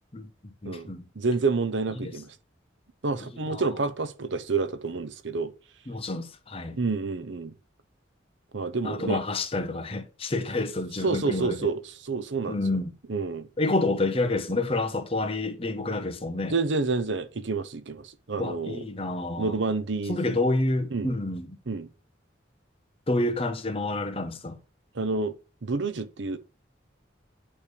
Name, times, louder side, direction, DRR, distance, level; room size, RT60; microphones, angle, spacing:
voice 1, 0.1-1.1 2.0-2.1 3.2-3.7 5.9-6.8 8.8-11.7 12.5-12.9 13.6-16.5 18.4-19.6 20.1-21.6 23.1-24.6, left 2 dB, 30° left, 0.9 m, -29 dB
voice 2, 1.2-2.3 3.0-5.5 6.7-7.5 8.5-9.2 11.0-12.6 13.1-13.5 16.5-18.8 19.4-20.2 20.9-21.1 21.7-21.9 24.9-25.3 25.6-26.4, right 3 dB, 70° right, 0.8 m, -28 dB
8.6 x 3.3 x 6.7 m
head